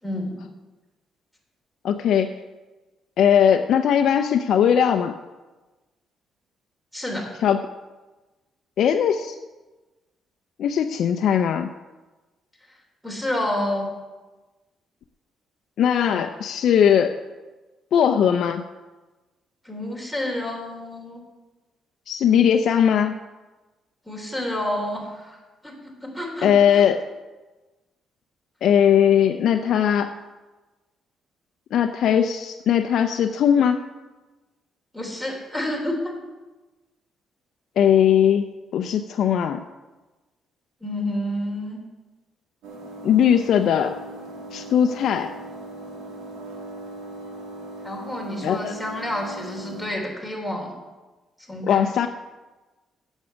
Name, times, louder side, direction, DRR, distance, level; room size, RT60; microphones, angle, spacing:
voice 1, 0.0-0.4 6.9-7.3 13.0-13.9 19.6-21.2 24.0-25.4 25.6-25.7 26.0-26.8 34.9-36.0 40.8-41.8 47.8-50.7 51.5-51.8, left 1 dB, 5° right, 0 dB, 3.4 m, -29 dB
voice 2, 1.8-2.3 3.2-5.1 7.4-7.6 8.8-9.4 10.6-11.7 15.8-17.2 17.9-18.6 22.1-23.2 26.4-27.0 28.6-30.1 31.7-33.8 37.8-39.6 43.0-44.0 44.5-45.3 48.4-48.8 51.6-52.1, left 8 dB, 70° left, 6 dB, 0.5 m, -19 dB
sound 1, 42.6-49.9, right 2 dB, 90° right, 2.2 m, -39 dB
8.5 x 7.4 x 8.0 m, 1.2 s
cardioid pair, 90°, 0 cm